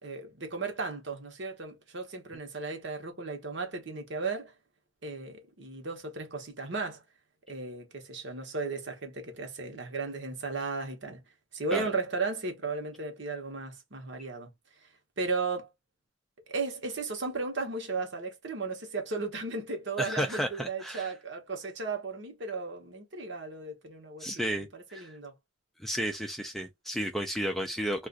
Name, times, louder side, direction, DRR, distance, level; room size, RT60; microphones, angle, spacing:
voice 1, 0.0-4.5 5.0-7.0 7.5-11.2 11.5-14.5 15.2-15.7 16.5-24.3 24.7-25.3, right 3 dB, 60° right, 1.0 m, -35 dB
voice 2, 20.0-21.1 24.2-25.2 25.8-28.1, equal, ahead, 0.4 m, -33 dB
2.5 x 2.4 x 3.7 m
head